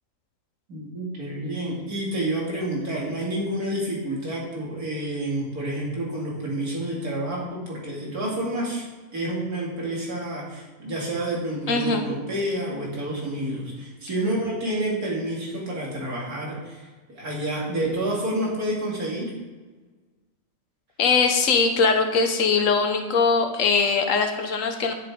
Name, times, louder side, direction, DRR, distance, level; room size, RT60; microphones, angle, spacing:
voice 1, 0.7-8.8 9.1-19.3, right 1 dB, 80° right, -4 dB, 2.9 m, -29 dB
voice 2, 11.7-12.0 21.0-24.9, left 4 dB, 60° left, 5 dB, 1.3 m, -21 dB
10.0 x 6.9 x 3.6 m, 1.3 s
omnidirectional pair, 1.6 m